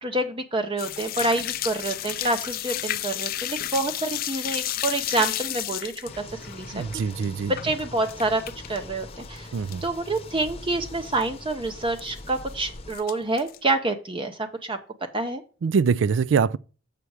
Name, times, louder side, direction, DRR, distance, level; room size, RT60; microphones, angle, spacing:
voice 1, 0.0-7.0 7.5-9.5 9.8-14.8 15.1-15.4, right 2 dB, 25° right, 0.6 m, -27 dB
sound 1, 0.8-8.8 9.1-9.9 10.2-10.3 10.7-10.8 11.0-11.2 12.0-12.5 12.9-13.6, left 13 dB, 45° left, 0.4 m, -32 dB
sound 2, 6.0-13.0, left 2 dB, 30° left, 0.9 m, -42 dB
voice 2, 6.7-7.5 9.5-9.8 15.6-16.6, right 5 dB, 65° right, 0.4 m, -23 dB
7.1 x 6.7 x 4.7 m
head